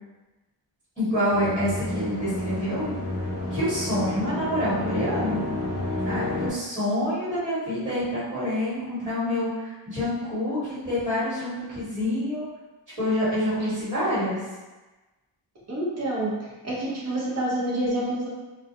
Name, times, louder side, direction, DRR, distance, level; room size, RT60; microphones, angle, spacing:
voice 1, 1.0-2.9 3.5-5.5 6.0-12.5 13.0-14.4, left 1 dB, 15° right, -13 dB, 1.4 m, -27 dB
sound 1, 1.3-6.5, left 1 dB, 35° left, 0.4 m, -30 dB
voice 2, 15.7-16.3 16.6-18.3, right 1 dB, 35° right, -6 dB, 0.8 m, -27 dB
2.3 x 2.2 x 2.7 m, 1.2 s
wide cardioid pair, 125°, 46 cm